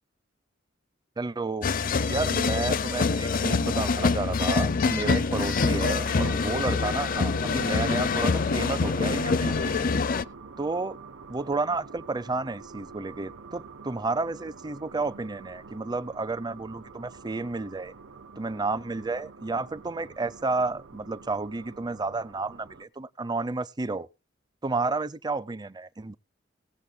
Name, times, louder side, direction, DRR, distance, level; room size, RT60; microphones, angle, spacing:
voice 1, 1.2-1.7 2.1-9.8 10.6-11.0 11.3-17.9 18.4-24.1 24.6-26.1, right 3 dB, 20° right, 0.5 m, -31 dB
sound 1, 1.6-10.2, left 4 dB, 50° left, 0.5 m, -25 dB
sound 2, 5.6-22.8, right 4 dB, 85° right, 1.0 m, -46 dB
18.0 x 7.3 x 4.0 m
head